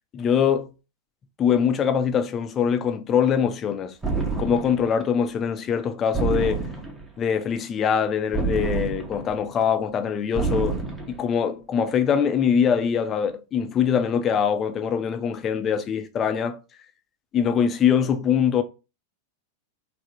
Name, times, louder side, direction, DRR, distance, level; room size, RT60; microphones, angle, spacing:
voice 1, 0.1-0.7 1.4-4.0 4.4-6.7 7.2-10.8 11.1-16.6 17.3-18.6, left 7 dB, 25° left, 0.5 m, -23 dB
sound 1, 4.0-4.9 6.1-7.1 8.3-9.4 10.4-11.2, right 4 dB, 10° right, 0.8 m, -27 dB
3.5 x 2.1 x 4.3 m
figure-of-eight pair, 90°, 0 cm